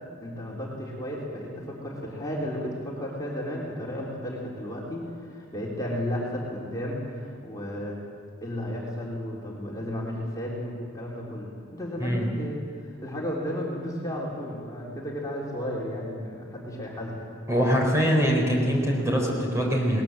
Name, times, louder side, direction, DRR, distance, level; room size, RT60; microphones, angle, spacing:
voice 1, 0.2-8.0 8.4-17.3, equal, 20° left, -3 dB, 3.6 m, -33 dB
voice 2, 17.5-20.0, equal, 15° right, -1 dB, 4.2 m, -23 dB
21.0 x 20.0 x 7.9 m, 2.4 s
head